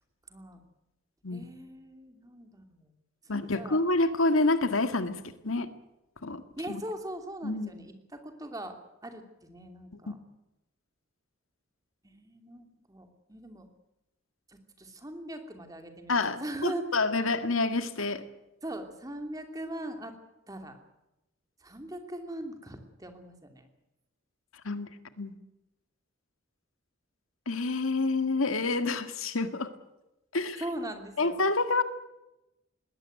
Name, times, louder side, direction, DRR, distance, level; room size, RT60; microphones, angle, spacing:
voice 1, 0.3-0.7 1.3-2.9 3.2-3.8 6.6-10.2 12.0-13.7 14.5-16.8 18.6-20.1 20.5-20.8 21.6-23.7 30.6-31.4, right 1 dB, 15° right, 6 dB, 2.9 m, -40 dB
voice 2, 3.3-5.2 5.4-5.7 6.2-6.4 6.7-6.8 7.4-7.7 16.1-18.2 24.6-24.9 25.2-25.3 27.5-29.7 30.3-30.6 31.2-31.8, left 3 dB, 90° left, 10 dB, 1.9 m, -28 dB
20.5 x 17.0 x 9.2 m, 0.93 s
head